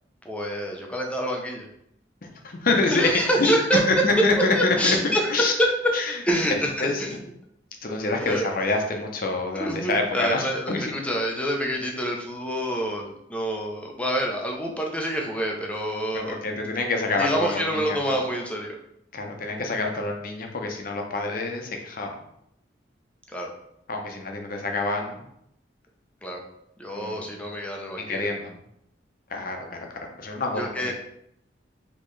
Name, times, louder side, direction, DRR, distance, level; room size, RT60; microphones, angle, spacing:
voice 1, 0.2-1.7 2.9-3.8 4.5-5.9 6.2-7.2 8.2-8.5 9.5-16.4 17.2-18.8 23.3-23.5 26.2-26.4 26.8-28.3 30.6-30.9, equal, 5° left, 0 dB, 0.6 m, -27 dB
voice 2, 2.2-3.1 3.4-3.6 3.9-5.0 5.3-5.5 5.9-6.4 6.8-7.0 7.8-10.9 16.1-18.2 19.1-22.2 23.9-25.3 26.9-27.3 28.0-28.6 29.3-30.9, left 3 dB, 50° left, 2 dB, 0.7 m, -27 dB
4.3 x 3.0 x 3.1 m, 0.75 s
head